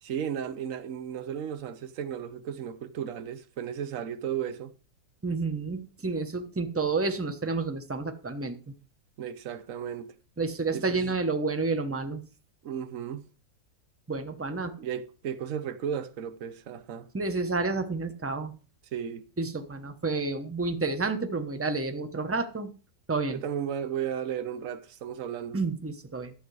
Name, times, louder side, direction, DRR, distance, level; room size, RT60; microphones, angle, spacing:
voice 1, 0.0-4.7 9.2-10.1 10.7-11.2 12.6-13.2 14.8-17.1 18.9-19.3 23.3-25.6, right 8 dB, 55° right, 1.2 m, -34 dB
voice 2, 5.2-8.6 10.4-12.2 14.1-14.7 17.1-18.5 19.4-22.7 23.1-23.4 25.5-26.3, right 3 dB, 10° right, 0.8 m, -30 dB
12.0 x 8.5 x 4.8 m
omnidirectional pair, 1.9 m